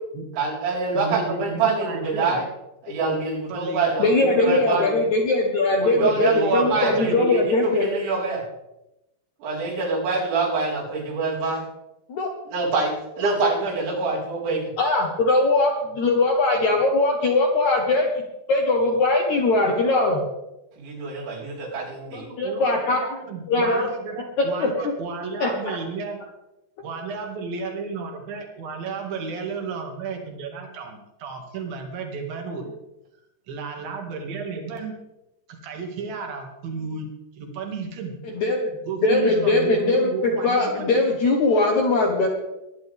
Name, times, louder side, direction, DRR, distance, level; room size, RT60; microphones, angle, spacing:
voice 1, 0.3-2.4 2.8-4.9 5.8-8.4 9.4-11.6 12.5-14.7 20.8-22.3, right 4 dB, 85° right, -6 dB, 6.8 m, -25 dB
voice 2, 0.9-2.4 3.5-4.0 4.3-5.1 6.0-7.3 21.9-26.2 26.8-32.8 33.5-34.9 35.5-37.1 37.3-38.1 38.9-41.0, right 4 dB, 60° right, 2 dB, 3.7 m, -33 dB
voice 3, 4.0-7.9 12.1-12.3 14.8-18.2 18.5-20.2 22.1-23.0 23.5-23.9 24.6-24.9 25.4-25.8 38.2-38.6 39.0-42.3, left 2 dB, 65° left, 1 dB, 1.9 m, -21 dB
22.0 x 11.0 x 3.6 m, 0.93 s
omnidirectional pair, 5.1 m